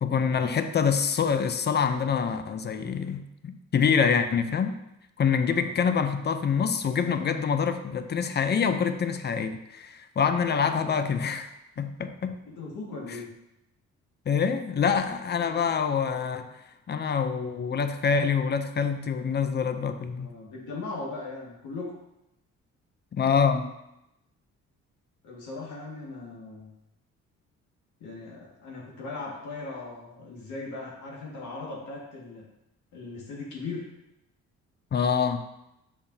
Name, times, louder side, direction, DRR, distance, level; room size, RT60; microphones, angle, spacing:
voice 1, 0.0-4.8 5.2-11.5 11.8-12.4 14.3-16.5 16.9-20.3 23.1-23.7 34.9-35.4, left 6 dB, 35° left, 9 dB, 0.6 m, -26 dB
voice 2, 10.6-11.1 12.4-13.3 15.4-15.7 20.2-21.9 25.2-26.7 28.0-32.4 32.9-33.8, left 3 dB, 80° left, -4 dB, 1.9 m, -39 dB
7.1 x 5.1 x 2.7 m, 0.87 s
cardioid pair, 90°, 30 cm